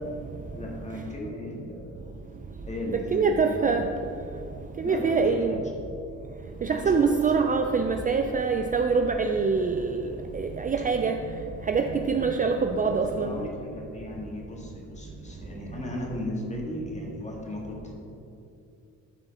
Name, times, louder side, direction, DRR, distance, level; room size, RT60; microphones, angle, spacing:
voice 1, 0.5-2.0 2.7-3.9 4.8-5.6 6.6-7.2 13.1-17.9, left 1 dB, 25° left, -2 dB, 1.8 m, -36 dB
voice 2, 2.9-3.9 4.8-5.6 6.6-11.2 11.7-13.4, right 5 dB, 30° right, 5 dB, 0.4 m, -24 dB
12.0 x 4.0 x 4.1 m, 2.6 s
cardioid pair, 90°, 30 cm